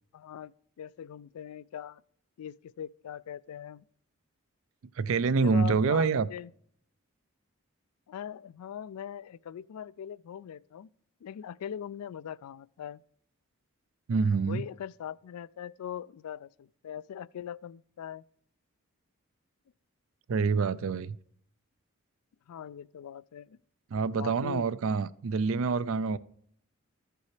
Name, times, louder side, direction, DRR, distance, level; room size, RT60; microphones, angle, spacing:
voice 1, 0.1-0.5 0.8-2.0 2.4-3.8 5.2-6.5 8.1-10.9 11.2-13.0 14.5-18.2 20.8-21.2 22.5-23.6 24.1-24.7, left 9 dB, 90° left, 0.3 m, -41 dB
voice 2, 5.0-6.3 14.1-14.6 20.3-21.2 23.9-26.2, right 5 dB, 65° right, 0.4 m, -26 dB
13.5 x 6.8 x 3.2 m
head